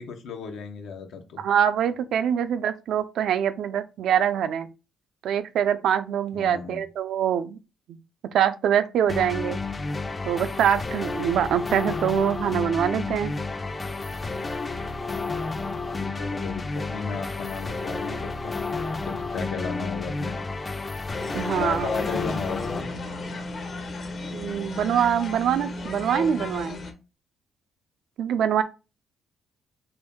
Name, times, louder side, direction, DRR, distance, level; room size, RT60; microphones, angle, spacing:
voice 1, 0.0-1.4 6.3-6.8 16.0-18.5 19.0-20.5 21.5-22.9, left 5 dB, 75° left, 0.8 m, -34 dB
voice 2, 1.4-4.7 5.2-7.6 7.9-8.0 8.3-9.6 10.3-13.3 21.3-21.9 24.3-26.8 28.2-28.6, right 9 dB, 75° right, 0.4 m, -24 dB
sound 1, 9.1-22.8, left 3 dB, 25° left, 0.4 m, -31 dB
sound 2, 21.1-26.9, left 2 dB, 45° left, 0.8 m, -34 dB
3.0 x 2.6 x 3.5 m
cardioid pair, 90°, 0 cm